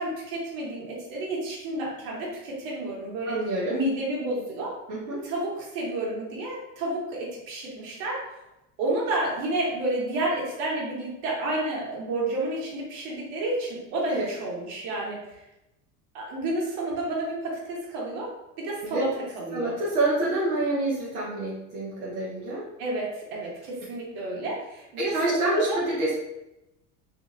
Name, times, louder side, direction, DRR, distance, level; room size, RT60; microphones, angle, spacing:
voice 1, 0.0-3.4 3.7-4.7 5.2-8.4 8.8-15.3 16.1-18.3 18.6-19.1 19.3-19.7 22.8-25.1 25.5-25.8, right 2 dB, 65° right, -4 dB, 1.4 m, -30 dB
voice 2, 3.2-3.7 4.9-5.2 14.1-14.3 18.8-19.1 19.5-22.6 25.0-26.1, right 2 dB, 90° right, -8 dB, 1.1 m, -27 dB
3.1 x 2.8 x 2.6 m, 0.92 s
hypercardioid pair, 85°, 43 cm